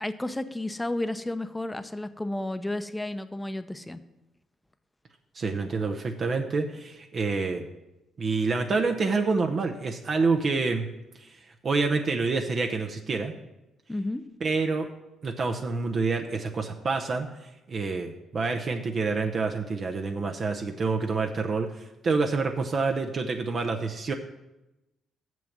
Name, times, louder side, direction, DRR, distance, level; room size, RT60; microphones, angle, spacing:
voice 1, 0.0-4.0 13.9-14.2, left 1 dB, 10° left, 11 dB, 0.7 m, -32 dB
voice 2, 5.3-7.7 8.2-10.9 11.1-13.3 14.4-14.9 15.2-24.1, right 4 dB, 50° right, 3 dB, 0.7 m, -27 dB
7.1 x 6.1 x 7.3 m, 0.97 s
hypercardioid pair, 50°, 0 cm